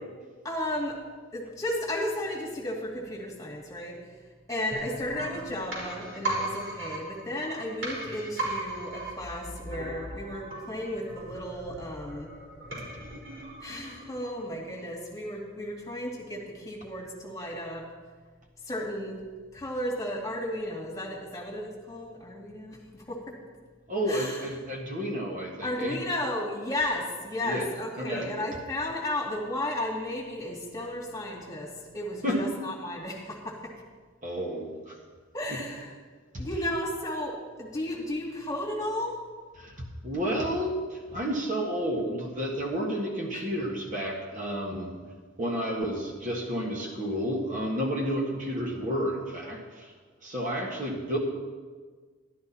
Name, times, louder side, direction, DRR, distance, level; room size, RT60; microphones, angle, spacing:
voice 1, 0.4-1.0 1.3-4.0 4.5-12.3 13.6-17.8 18.6-19.2 19.5-23.2 24.1-24.4 25.6-33.7 35.3-35.9 36.4-37.3 37.6-39.2 43.3-43.4, left 1 dB, 15° left, -3 dB, 2.3 m, -34 dB
sound 1, 4.7-14.4 14.7-14.8, right 2 dB, 70° right, 4.2 m, -37 dB
voice 2, 23.9-26.0 27.4-27.7 28.0-28.3 32.2-32.4 34.2-35.0 35.5-35.6 36.3-36.5 39.6-44.9 45.4-49.9 50.2-51.2, equal, 40° right, -1 dB, 1.6 m, -31 dB
12.5 x 12.0 x 4.2 m, 1.5 s
head